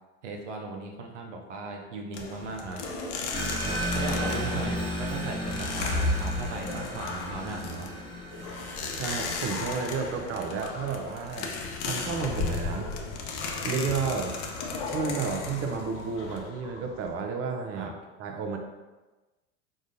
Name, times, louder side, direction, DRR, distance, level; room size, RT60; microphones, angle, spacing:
voice 1, 0.2-2.8 3.9-7.9 17.8-17.9, right 3 dB, 85° right, 1 dB, 0.7 m, -37 dB
sound 1, 2.1-17.1, left 3 dB, 55° left, 0.8 m, -34 dB
sound 2, 3.3-9.6, equal, 15° left, 1.0 m, -34 dB
voice 2, 8.9-11.5 11.8-12.9 13.6-14.4 14.9-17.9 18.2-18.6, right 5 dB, 40° right, 4 dB, 0.7 m, -32 dB
4.9 x 3.9 x 2.6 m, 1.2 s
hypercardioid pair, 75°, 35 cm